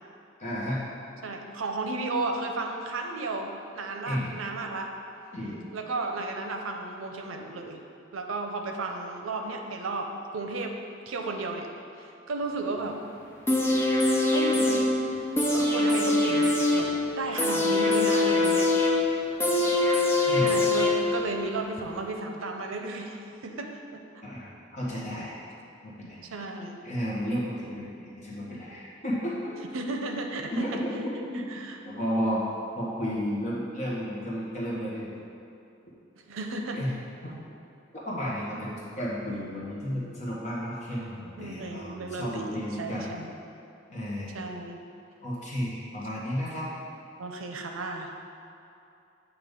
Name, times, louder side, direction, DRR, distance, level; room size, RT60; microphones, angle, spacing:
voice 1, 0.4-0.8 4.0-4.3 5.3-5.6 20.3-20.5 24.2-25.3 25.8-26.2 26.8-29.6 30.5-31.5 31.8-32.5 32.8-35.1 36.7-37.0 37.2-37.3 38.0-43.1 43.9-44.4 45.2-46.7, equal, 35° left, -7 dB, 1.3 m, -32 dB
voice 2, 1.2-4.9 5.7-7.8 8.1-10.1 10.3-10.7 11.1-11.7 12.0-13.0 14.3-15.0 15.5-16.9 17.2-18.7 20.4-24.0 26.2-26.8 29.7-30.8 31.5-31.8 36.3-36.8 41.4-43.3 44.3-44.8 47.2-48.1, right 3 dB, 90° right, 3 dB, 0.6 m, -34 dB
sound 1, 13.5-21.4 21.8-21.9, left 2 dB, 10° left, 0.6 m, -24 dB
8.0 x 3.0 x 5.2 m, 2.7 s
head